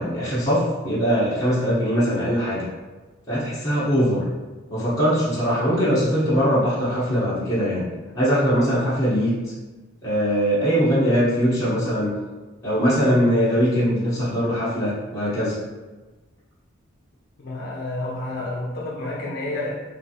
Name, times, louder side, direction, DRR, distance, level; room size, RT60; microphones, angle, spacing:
voice 1, 0.0-2.6 3.3-4.2 4.7-7.9 8.1-9.4 10.0-12.1 12.6-15.6, equal, 15° left, -10 dB, 0.7 m, -21 dB
voice 2, 17.4-19.8, left 2 dB, 50° left, -2 dB, 0.4 m, -30 dB
3.2 x 2.4 x 2.7 m, 1.2 s
head